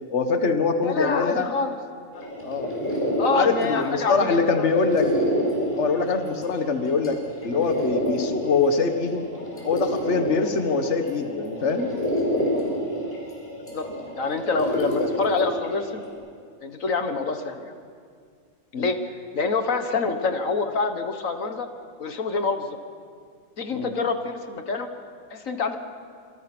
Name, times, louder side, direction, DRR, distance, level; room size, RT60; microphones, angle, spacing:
voice 1, 0.1-1.5 2.4-2.7 3.3-5.1 5.7-9.2 9.6-11.9 18.7-18.9 23.7-23.9, left 4 dB, 60° left, 6 dB, 1.7 m, -23 dB
voice 2, 0.8-1.8 2.2-2.3 3.2-4.7 13.7-13.8 14.2-16.0 16.6-17.7 18.8-19.0 19.3-21.7 22.0-22.8 23.6-24.9 25.3-25.8, left 4 dB, 80° left, 6 dB, 1.9 m, -26 dB
sound 1, 2.1-16.1, equal, 40° left, 6.9 m, -29 dB
27.5 x 26.5 x 6.1 m, 2.1 s
omnidirectional pair, 1.4 m